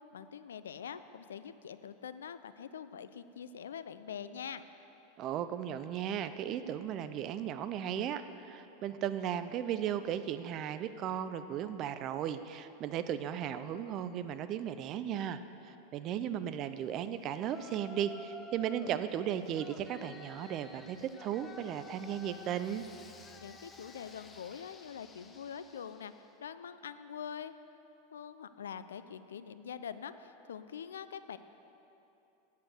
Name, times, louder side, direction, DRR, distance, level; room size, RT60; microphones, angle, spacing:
voice 1, 0.0-4.6 23.4-26.1 26.4-27.5 28.1-31.4, left 8 dB, 75° left, 12 dB, 0.4 m, -44 dB
voice 2, 5.2-15.4 15.7-22.8, right 10 dB, 45° right, 12 dB, 0.5 m, -36 dB
Yell, 17.4-19.0 19.5-26.3, left 3 dB, 20° left, 0.7 m, -52 dB
8.4 x 7.7 x 6.6 m, 3.0 s
hypercardioid pair, 90°, 0 cm